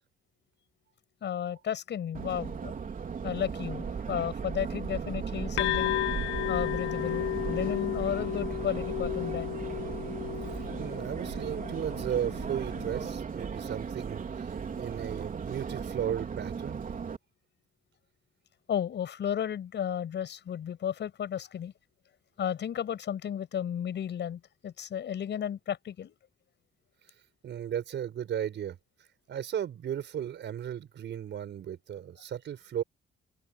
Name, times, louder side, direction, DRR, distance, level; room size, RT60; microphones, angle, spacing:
voice 1, 1.2-2.7 3.2-6.0 6.5-9.6 18.7-21.7 22.4-26.2, left 9 dB, 60° left, 7.5 m, -33 dB
Subway metro underground, 2.1-17.2, right 6 dB, 45° right, 3.8 m, -36 dB
sound 1, 5.6-13.1, left 13 dB, 90° left, 1.3 m, -34 dB
voice 2, 10.5-14.2 14.7-16.8 27.4-28.8 29.3-32.8, right 9 dB, 65° right, 5.1 m, -35 dB
open air
cardioid pair, 90°, 20 cm